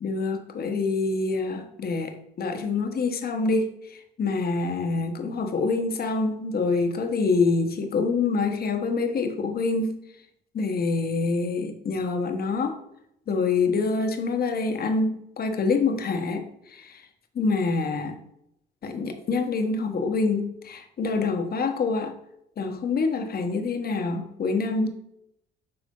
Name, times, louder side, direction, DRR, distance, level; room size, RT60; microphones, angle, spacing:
voice 1, 0.0-10.0 10.5-12.8 13.3-17.0 17.3-18.1 18.8-22.1 22.6-24.9, left 4 dB, 50° left, 6 dB, 1.1 m, -26 dB
7.8 x 4.9 x 3.8 m, 0.78 s
cardioid pair, 90°, 20 cm